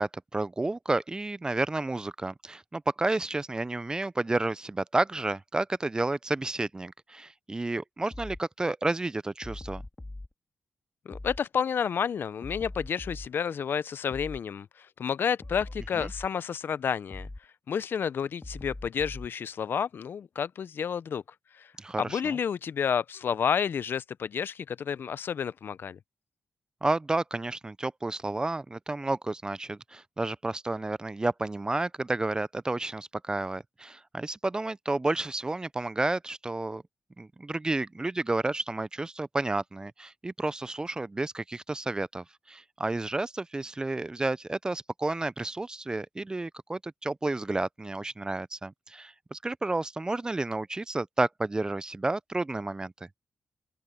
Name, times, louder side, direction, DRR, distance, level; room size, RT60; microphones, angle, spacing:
voice 1, 0.0-9.8 15.9-16.1 21.8-22.4 26.8-36.8 37.2-52.9, right 2 dB, 20° right, 0.3 m, -31 dB
sound 1, 8.1-8.4 9.4-10.3 11.1-11.4 12.4-13.3 14.1-14.4 15.4-16.3 17.1-17.4 18.4-19.3, left 2 dB, 15° left, 2.4 m, -41 dB
voice 2, 11.1-17.3 17.7-21.2 21.5-21.7 22.0-26.0, left 7 dB, 60° left, 0.5 m, -30 dB
open air
cardioid pair, 95°, 4 cm